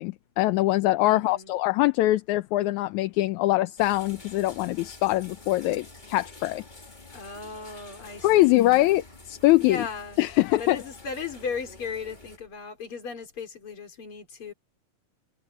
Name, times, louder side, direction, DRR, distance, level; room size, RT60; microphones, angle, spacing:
voice 1, 0.0-6.6 8.2-9.8 10.2-10.8, left 17 dB, 75° left, 2.0 m, -23 dB
voice 2, 1.0-1.5 7.1-8.8 9.6-10.2 10.6-14.5, left 5 dB, 40° left, 4.1 m, -36 dB
sound 1, 3.8-12.4, left 2 dB, 15° left, 1.9 m, -48 dB
omnidirectional pair, 3.6 m